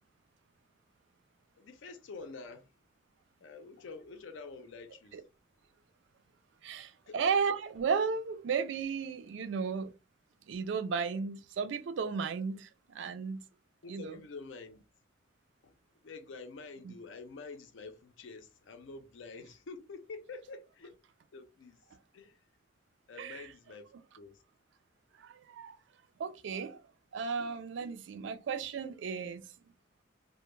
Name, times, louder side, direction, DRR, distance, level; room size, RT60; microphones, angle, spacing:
voice 1, 1.6-2.7 3.4-5.2 7.1-7.2 13.8-14.8 15.6-15.8 16.0-20.9 21.3-21.8 22.1-22.4 23.1-24.4, left 4 dB, 80° left, 0.5 m, -47 dB
voice 2, 6.6-9.9 10.5-13.5 13.9-14.2 16.8-16.9 23.2-23.5 25.2-25.8 26.2-26.8 27.1-29.5, right 5 dB, 75° right, 0.3 m, -34 dB
2.1 x 2.1 x 3.0 m
head